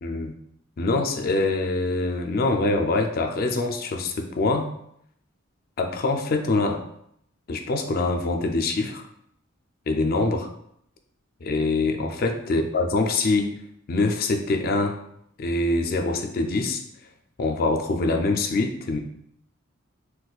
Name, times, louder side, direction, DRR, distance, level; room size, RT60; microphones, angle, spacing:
voice 1, 0.0-0.3 0.8-4.7 5.8-6.8 7.5-9.1 9.9-10.5 11.4-13.5 13.9-15.0 15.4-16.8 17.4-19.0, left 2 dB, 45° left, 4 dB, 0.4 m, -24 dB
3.9 x 2.2 x 2.4 m, 0.71 s
head